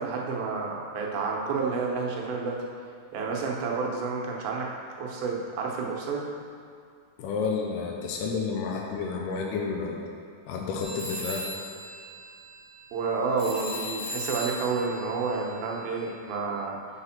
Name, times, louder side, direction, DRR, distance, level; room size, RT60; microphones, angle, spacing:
voice 1, 0.0-2.6 3.1-4.7 5.0-6.3 12.9-16.8, right 4 dB, 85° right, -1 dB, 2.8 m, -30 dB
voice 2, 7.2-10.1 10.5-11.4, left 5 dB, 75° left, -1 dB, 2.1 m, -30 dB
sound 1, 10.8-16.3, equal, 50° left, 2.0 m, -38 dB
7.9 x 4.2 x 5.8 m, 2.3 s
omnidirectional pair, 4.1 m